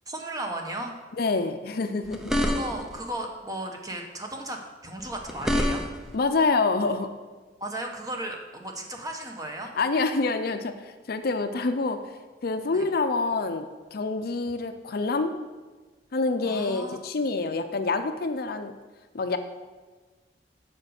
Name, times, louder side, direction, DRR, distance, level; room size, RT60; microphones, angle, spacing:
voice 1, 0.1-0.9 2.5-5.8 7.6-9.7 12.7-12.8 16.4-17.0, right 1 dB, 20° right, 2 dB, 1.0 m, -35 dB
voice 2, 1.2-2.4 6.1-7.1 9.7-12.0 12.4-15.3 16.1-18.7 19.1-19.4, left 3 dB, 55° left, 8 dB, 0.5 m, -27 dB
sound 1, 2.0-3.0 5.0-6.2, left 1 dB, 5° right, 0.6 m, -27 dB
7.4 x 5.2 x 6.5 m, 1.4 s
head